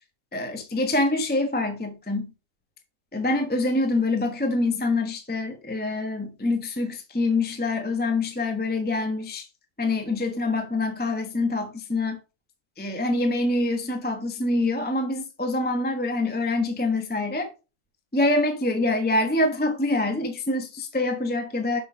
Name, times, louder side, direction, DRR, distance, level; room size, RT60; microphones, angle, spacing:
voice 1, 0.3-2.3 3.1-9.5 9.8-12.2 12.8-17.5 18.1-21.8, left 2 dB, 5° left, 0.9 m, -25 dB
6.2 x 5.8 x 4.9 m
omnidirectional pair, 1.8 m